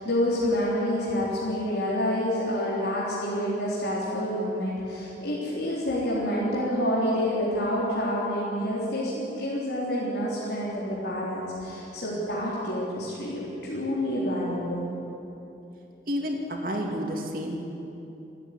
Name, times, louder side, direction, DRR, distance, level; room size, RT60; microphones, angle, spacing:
voice 1, 0.0-14.8, equal, 70° left, -7 dB, 3.9 m, -28 dB
voice 2, 16.1-17.6, equal, 50° right, 1 dB, 2.8 m, -30 dB
27.0 x 9.7 x 9.9 m, 2.9 s
head